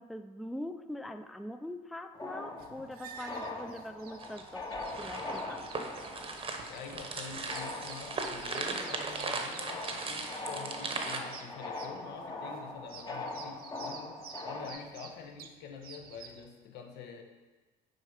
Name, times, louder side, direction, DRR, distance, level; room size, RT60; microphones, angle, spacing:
voice 1, 0.0-5.7, left 1 dB, ahead, 7 dB, 0.3 m, -43 dB
sound 1, 2.1-14.7, left 2 dB, 25° left, 0.8 m, -42 dB
sound 2, 2.6-16.5, right 7 dB, 60° right, 0.6 m, -51 dB
sound 3, 4.2-11.2, right 3 dB, 30° right, 0.8 m, -38 dB
voice 2, 6.6-17.2, left 6 dB, 85° left, 4 dB, 0.9 m, -47 dB
6.6 x 4.5 x 4.9 m, 1.3 s
cardioid pair, 110°, 17 cm